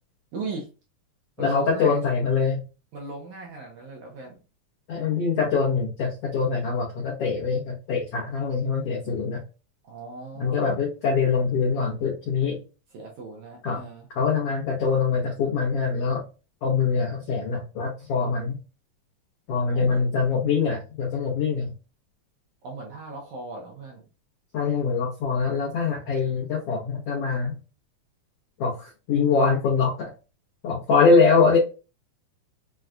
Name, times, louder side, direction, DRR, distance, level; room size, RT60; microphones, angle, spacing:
voice 1, 0.3-0.7 1.4-2.0 2.9-4.4 9.8-10.8 12.9-14.1 19.6-20.1 22.6-24.0, right 3 dB, 75° right, -1 dB, 1.8 m, -38 dB
voice 2, 1.4-2.6 4.9-9.4 10.4-12.6 13.6-13.8 14.1-16.3 16.6-18.5 19.5-21.7 24.5-27.6 28.6-30.1 30.6-31.6, left 5 dB, 85° left, -3 dB, 1.3 m, -23 dB
6.1 x 2.2 x 2.5 m, 0.32 s
omnidirectional pair, 4.2 m